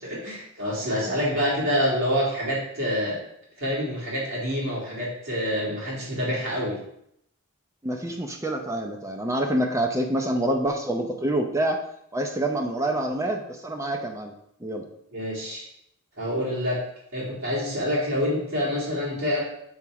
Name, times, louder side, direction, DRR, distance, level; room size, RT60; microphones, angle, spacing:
voice 1, 0.0-3.2 3.6-6.8 15.1-15.6 16.2-16.8 17.1-19.4, equal, 60° right, -7 dB, 2.2 m, -27 dB
voice 2, 7.8-11.8 12.1-14.3 14.6-14.8, right 1 dB, 15° right, 3 dB, 0.5 m, -27 dB
7.1 x 3.0 x 4.7 m, 0.75 s
head